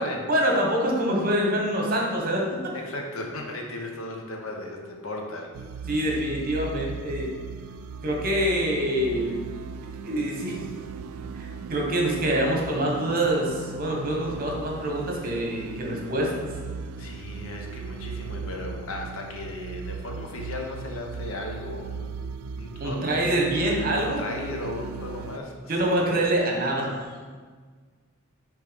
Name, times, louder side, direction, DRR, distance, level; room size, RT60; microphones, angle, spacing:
voice 1, 0.3-2.7 5.9-7.3 8.0-9.4 10.0-10.6 11.3-16.5 22.8-24.2 25.7-27.1, right 1 dB, 45° right, -1 dB, 1.2 m, -25 dB
voice 2, 2.7-5.5 17.0-22.2 22.6-23.5 23.9-26.1, left 2 dB, 75° left, 2 dB, 1.0 m, -36 dB
sound 1, 5.5-25.4, right 6 dB, 85° right, 0.3 m, -37 dB
6.7 x 3.4 x 5.2 m, 1.5 s
head